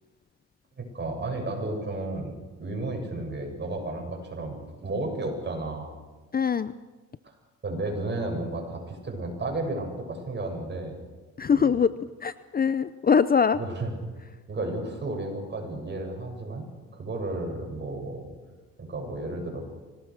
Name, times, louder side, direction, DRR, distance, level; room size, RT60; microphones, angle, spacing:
voice 1, 0.8-5.9 7.2-7.3 7.6-11.0 11.5-11.8 13.5-13.9 14.5-16.7 16.9-18.3 18.8-19.6, right 2 dB, 35° right, 1 dB, 7.8 m, -33 dB
voice 2, 6.3-6.7 11.4-11.9 12.2-13.6, left 6 dB, 30° left, 15 dB, 0.6 m, -22 dB
25.5 x 18.5 x 6.6 m, 1.3 s
cardioid pair, 90°, 30 cm